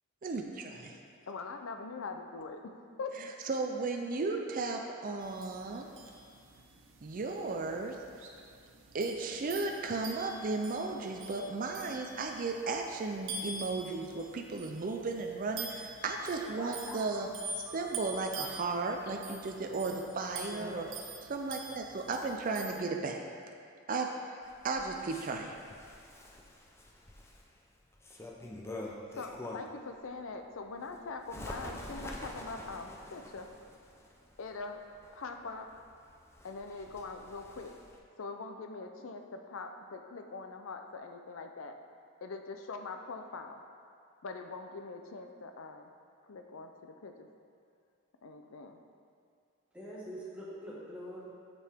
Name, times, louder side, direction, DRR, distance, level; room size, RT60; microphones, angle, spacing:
voice 1, 0.2-1.0 3.5-5.9 7.0-8.0 8.9-17.3 17.6-20.9 21.3-23.2 23.9-24.1 24.6-25.6, right 3 dB, 40° right, 2 dB, 0.4 m, -35 dB
voice 2, 1.3-2.6 3.0-3.1 29.1-33.5 34.4-34.8 35.1-35.7 36.4-37.7 38.2-41.8 42.2-43.6 44.2-45.9 46.3-47.3 48.2-48.8, left 4 dB, 65° left, 5 dB, 0.5 m, -43 dB
sound 1, 5.2-22.8, right 3 dB, 60° right, 0.8 m, -46 dB
voice 3, 16.5-17.2 17.6-17.9 20.4-20.9 49.7-51.3, equal, 5° right, -8 dB, 1.6 m, -44 dB
Bird, 24.4-29.9 30.3-38.0, left 1 dB, 10° left, 0.5 m, -47 dB
7.2 x 6.8 x 3.5 m, 2.3 s
head